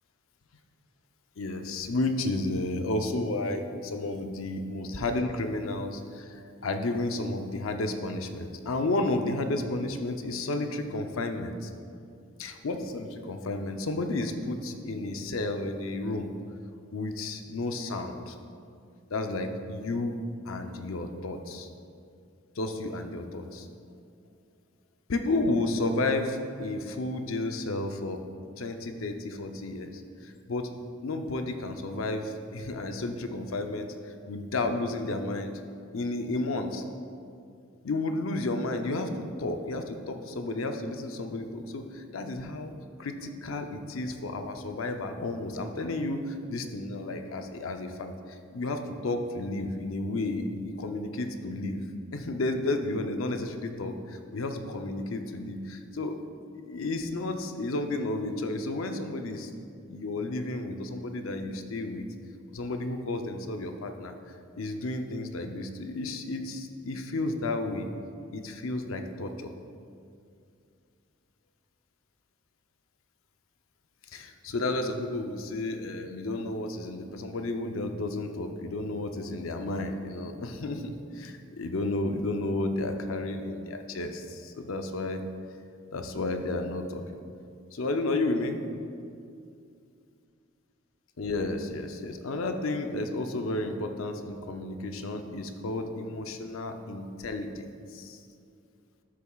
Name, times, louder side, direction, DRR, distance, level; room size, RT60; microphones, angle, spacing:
voice 1, 1.4-6.3 6.6-11.7 12.4-16.3 16.9-18.3 19.1-20.2 20.5-21.7 22.6-23.7 25.1-28.2 28.6-30.7 31.0-35.6 35.9-36.8 37.8-42.7 43.0-51.8 52.1-56.1 56.6-59.5 59.9-62.0 62.5-64.1 64.6-67.9 68.3-69.5 74.1-85.2 85.9-87.2 87.7-88.6 91.2-97.7 97.9-98.2, left 2 dB, 80° left, 6 dB, 0.6 m, -32 dB
12.5 x 6.8 x 2.4 m, 2.4 s
head